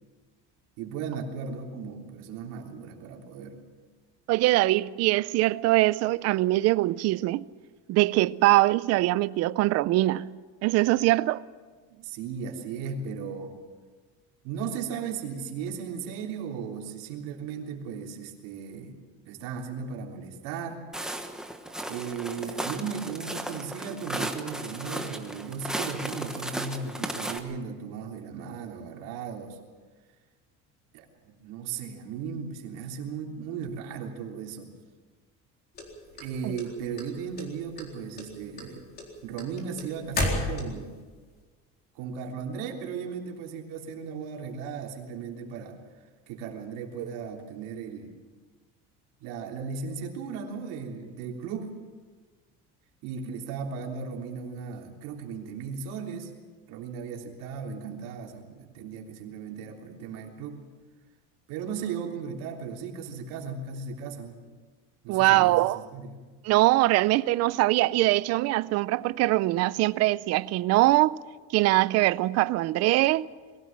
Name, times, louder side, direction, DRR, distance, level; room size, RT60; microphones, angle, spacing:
voice 1, 0.8-3.6 11.9-13.6 14.4-19.0 19.3-20.9 21.9-29.6 30.9-34.7 36.1-38.9 39.2-40.9 42.0-45.8 46.3-48.1 49.2-51.8 53.0-56.3 56.7-60.6 61.5-64.4 65.0-66.2, right 6 dB, 85° right, 3.5 m, -36 dB
voice 2, 4.3-7.5 7.9-11.4 36.4-36.5 65.1-65.8 66.4-71.2 71.5-73.3, right 18 dB, 50° right, 0.5 m, -23 dB
Walk footsteps, 20.9-27.4, right 1 dB, ahead, 1.1 m, -35 dB
sound 1, 35.8-37.0 37.4-37.9 38.2-41.0, left 2 dB, 30° left, 4.0 m, -31 dB
22.0 x 17.0 x 7.5 m
cardioid pair, 165°, 32 cm